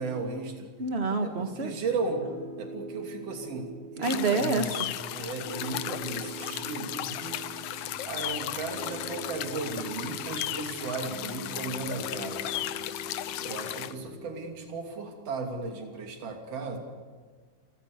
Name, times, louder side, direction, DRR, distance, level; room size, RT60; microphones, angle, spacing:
voice 1, 0.0-0.7 1.2-2.3 2.6-7.4 7.9-12.6 13.4-16.8, right 3 dB, 50° right, 3 dB, 3.8 m, -35 dB
voice 2, 0.8-1.7 4.0-4.6, right 3 dB, 35° right, 7 dB, 1.1 m, -27 dB
Piano, 1.4-14.5, right 1 dB, 50° left, 2.2 m, -44 dB
sound 1, 4.0-13.9, left 13 dB, 85° left, 1.4 m, -35 dB
29.0 x 15.0 x 6.7 m, 1.5 s
omnidirectional pair, 3.7 m